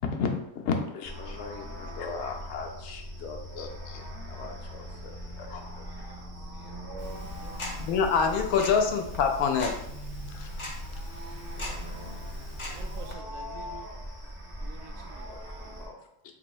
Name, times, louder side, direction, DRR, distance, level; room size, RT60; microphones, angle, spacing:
voice 1, 0.0-5.9 10.3-10.5 14.2-14.3 15.3-16.0, left 5 dB, 65° left, 3 dB, 0.8 m, -36 dB
sound 1, 1.0-15.9, equal, 25° right, 0.6 m, -41 dB
voice 2, 5.9-7.3 11.0-12.2, right 4 dB, 50° right, -3 dB, 0.9 m, -47 dB
Tick-tock, 7.0-13.1, left 1 dB, 40° left, 0.4 m, -39 dB
voice 3, 7.8-9.8 10.4-10.5, left 6 dB, 85° left, 5 dB, 1.1 m, -25 dB
voice 4, 12.6-13.9 14.6-15.3, right 7 dB, 75° right, 4 dB, 1.0 m, -48 dB
3.0 x 2.6 x 4.1 m, 0.83 s
omnidirectional pair, 1.5 m